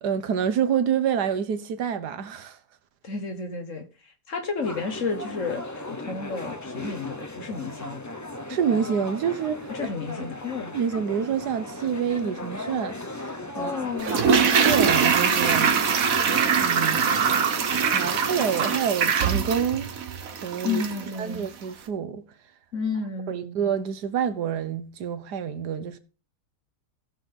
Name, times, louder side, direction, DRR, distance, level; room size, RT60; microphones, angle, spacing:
voice 1, 0.0-2.6 8.5-9.7 10.7-13.9 14.6-15.7 16.5-17.7 17.9-19.9 20.4-20.8 21.2-22.2 23.3-26.0, right 7 dB, 80° right, 1.6 m, -27 dB
voice 2, 3.0-3.8 4.3-8.1 9.7-10.7 13.5-14.5 20.6-21.5 22.7-23.6, left 4 dB, 50° left, 1.7 m, -32 dB
sound 1, 4.6-18.8, left 1 dB, 20° left, 0.5 m, -37 dB
Toilet flush, 14.0-21.1 21.3-21.4, right 6 dB, 60° right, 1.5 m, -23 dB
16.5 x 6.4 x 3.8 m
omnidirectional pair, 1.7 m